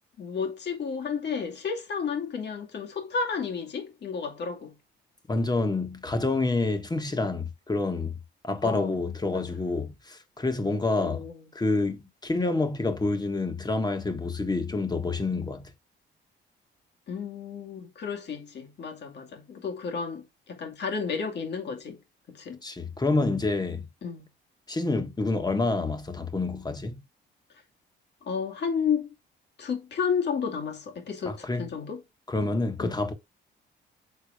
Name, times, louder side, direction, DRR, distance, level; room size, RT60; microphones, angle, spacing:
voice 1, 0.2-4.8 8.6-9.0 9.3-9.5 11.0-11.4 17.1-22.0 22.3-22.6 24.0-24.3 28.2-29.1 29.6-32.0 32.8-32.9, left 6 dB, 60° left, 2.4 m, -32 dB
voice 2, 5.3-8.2 8.4-11.2 11.5-15.7 22.6-23.8 24.7-27.0 31.2-31.7 32.3-33.1, left 3 dB, 20° left, 1.6 m, -28 dB
6.9 x 4.3 x 5.0 m
cardioid pair, 90°, 20 cm